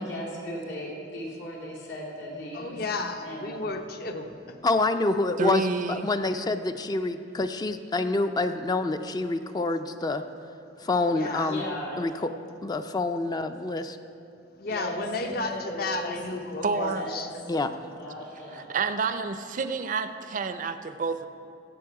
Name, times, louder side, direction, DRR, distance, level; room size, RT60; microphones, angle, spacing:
voice 1, 0.0-2.8 3.2-3.6 11.4-12.1 14.6-18.7, equal, 80° left, -5 dB, 2.8 m, -37 dB
voice 2, 2.5-4.6 11.1-11.5 14.6-17.3, left 3 dB, 55° left, 6 dB, 0.8 m, -33 dB
voice 3, 4.6-10.2 10.8-11.6 12.0-12.3 12.6-14.0 17.5-17.7, left 2 dB, 20° left, 8 dB, 0.4 m, -27 dB
voice 4, 5.4-6.1 16.6-17.0 18.5-21.3, right 4 dB, 45° right, 10 dB, 0.4 m, -29 dB
15.5 x 6.9 x 4.8 m, 2.7 s
head